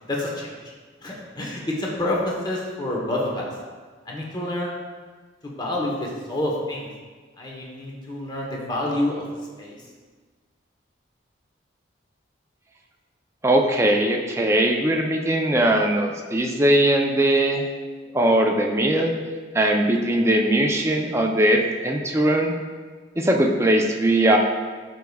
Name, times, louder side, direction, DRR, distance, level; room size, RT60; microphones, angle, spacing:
voice 1, 0.1-0.5 1.0-3.5 4.1-4.8 5.4-6.9 7.4-9.2 9.6-9.8, left 1 dB, 25° left, -2 dB, 1.0 m, -28 dB
voice 2, 13.4-17.6 18.1-19.1 19.5-22.5 23.2-24.4, right 1 dB, 15° right, 1 dB, 0.5 m, -20 dB
12.0 x 4.7 x 2.3 m, 1.5 s
head